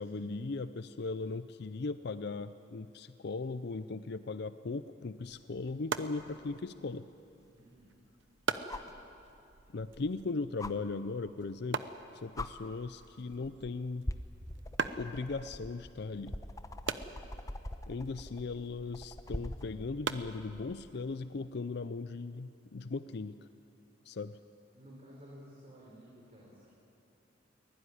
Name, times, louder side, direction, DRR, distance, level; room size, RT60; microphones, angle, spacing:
voice 1, 0.0-7.1 9.7-11.8 12.1-14.1 15.0-16.4 17.9-23.4 24.1-24.4, left 3 dB, 60° left, 13 dB, 0.5 m, -38 dB
sound 1, 5.2-21.1, right 4 dB, 75° right, 0.9 m, -43 dB
sound 2, 6.5-6.6 8.7-9.0 10.6-10.7 11.9-12.0 12.3-12.5 13.4-13.7 14.0-19.7 21.4-21.5, left 1 dB, 20° left, 0.9 m, -42 dB
voice 2, 7.5-7.9 24.7-26.7, equal, 35° right, -5 dB, 4.6 m, -54 dB
23.0 x 17.5 x 9.9 m, 2.6 s
head